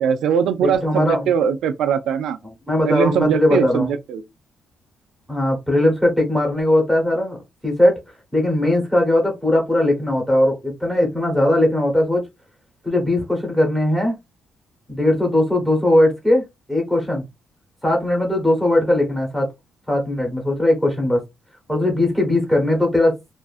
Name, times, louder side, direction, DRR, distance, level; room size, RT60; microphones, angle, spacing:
voice 1, 0.0-2.4 2.8-4.2, right 7 dB, 90° right, 0.3 m, -20 dB
voice 2, 0.6-1.3 2.7-3.9 5.3-7.4 7.6-8.0 8.3-12.2 12.8-14.1 14.9-16.4 16.7-17.2 17.8-19.5 19.9-21.2 21.7-23.1, left 1 dB, 5° left, 0.9 m, -19 dB
2.4 x 2.4 x 2.3 m
cardioid pair, 165°, 0 cm